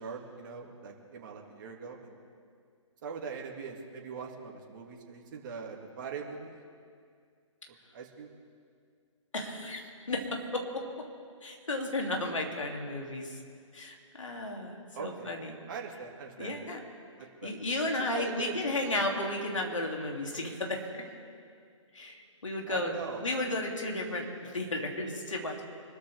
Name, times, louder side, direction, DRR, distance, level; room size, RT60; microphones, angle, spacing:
voice 1, 0.0-2.1 3.0-6.5 7.9-8.3 14.9-15.3 15.7-16.6 17.2-17.5 18.1-18.7 22.7-23.2, right 5 dB, 40° right, 0 dB, 2.4 m, -41 dB
voice 2, 9.3-10.8 11.4-13.4 13.7-15.6 16.4-16.8 17.4-21.0 21.9-22.9 23.2-25.6, left 2 dB, 70° left, 1 dB, 3.0 m, -34 dB
25.5 x 13.5 x 3.6 m, 2.2 s
figure-of-eight pair, 135°, 17 cm